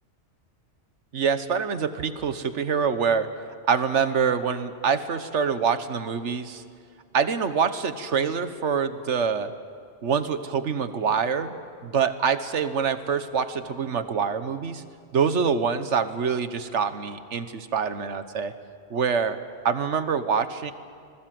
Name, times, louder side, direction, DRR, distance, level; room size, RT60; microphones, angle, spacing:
voice 1, 1.1-3.3 3.7-6.6 7.1-9.5 10.0-11.5 11.8-14.8 15.1-18.5 18.9-19.4 19.6-20.7, right 6 dB, 85° right, 11 dB, 1.5 m, -25 dB
26.5 x 20.0 x 7.7 m, 2.2 s
omnidirectional pair, 1.2 m